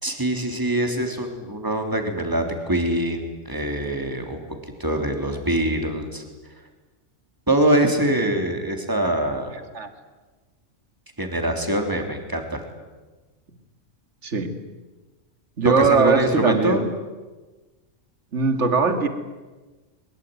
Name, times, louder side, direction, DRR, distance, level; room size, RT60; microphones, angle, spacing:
voice 1, 0.0-4.4 4.8-6.2 7.5-9.5 11.2-12.6 15.6-16.8, right 1 dB, 15° right, 4 dB, 3.3 m, -23 dB
voice 2, 14.2-14.6 15.6-16.9 18.3-19.1, right 4 dB, 65° right, 8 dB, 2.3 m, -20 dB
23.0 x 22.5 x 9.4 m, 1.2 s
omnidirectional pair, 1.3 m